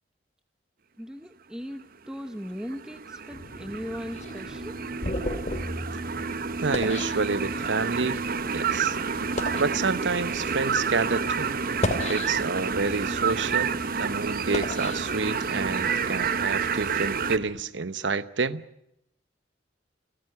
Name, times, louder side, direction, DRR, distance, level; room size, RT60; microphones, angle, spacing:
voice 1, 1.0-4.8, equal, 5° right, 0.9 m, -38 dB
sound 1, 2.3-17.4, right 5 dB, 55° right, 1.0 m, -29 dB
sound 2, 3.3-17.6, equal, 60° left, 2.2 m, -47 dB
sound 3, 4.1-7.9 8.5-8.7 9.2-9.7 10.5-10.7 11.6-12.7 13.2-15.7, left 1 dB, 40° left, 2.8 m, -34 dB
voice 2, 6.6-8.2 8.5-9.0 9.6-11.6 12.1-18.6, right 4 dB, 85° right, 0.9 m, -29 dB
29.0 x 13.0 x 9.6 m
head